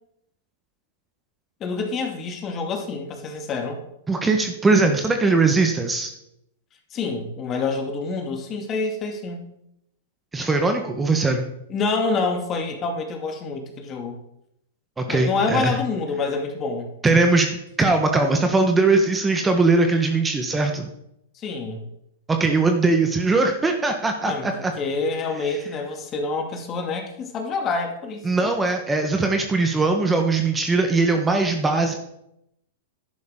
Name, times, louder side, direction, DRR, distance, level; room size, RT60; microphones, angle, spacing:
voice 1, 1.6-3.8 6.9-9.4 11.7-14.2 15.1-16.9 21.3-21.9 24.2-28.5, left 4 dB, 30° left, 3 dB, 2.4 m, -27 dB
voice 2, 4.1-6.1 10.3-11.5 15.0-15.8 17.0-20.9 22.3-24.7 28.2-31.9, right 3 dB, 15° right, 5 dB, 1.4 m, -20 dB
11.0 x 10.5 x 3.9 m, 0.80 s
hypercardioid pair, 110°, 0 cm